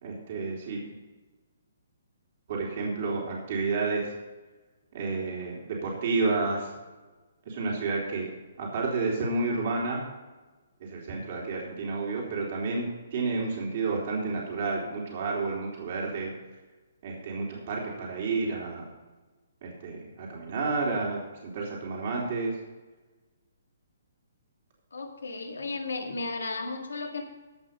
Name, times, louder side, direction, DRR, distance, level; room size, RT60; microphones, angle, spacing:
voice 1, 0.0-1.0 2.5-4.1 4.9-6.7 7.4-8.3 8.6-10.0 10.8-16.3 17.0-18.8 19.6-22.6, right 3 dB, 50° right, -2 dB, 3.2 m, -30 dB
voice 2, 24.9-27.2, left 3 dB, 80° left, 4 dB, 1.9 m, -34 dB
15.5 x 5.8 x 5.4 m, 1.2 s
hypercardioid pair, 140°, 0 cm